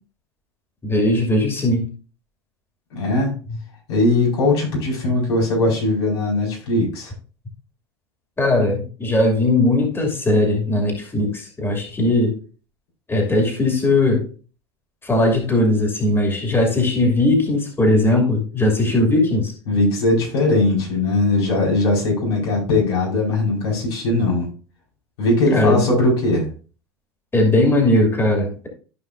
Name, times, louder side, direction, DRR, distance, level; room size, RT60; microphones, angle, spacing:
voice 1, 0.8-1.9 8.4-12.4 13.1-14.2 15.0-19.5 25.5-25.8 27.3-28.7, left 1 dB, 15° left, 1 dB, 2.6 m, -18 dB
voice 2, 2.9-3.3 3.9-7.1 19.7-24.5 25.2-26.5, left 2 dB, 75° left, -2 dB, 5.0 m, -19 dB
14.0 x 5.3 x 2.6 m, 0.36 s
hypercardioid pair, 85°, 14 cm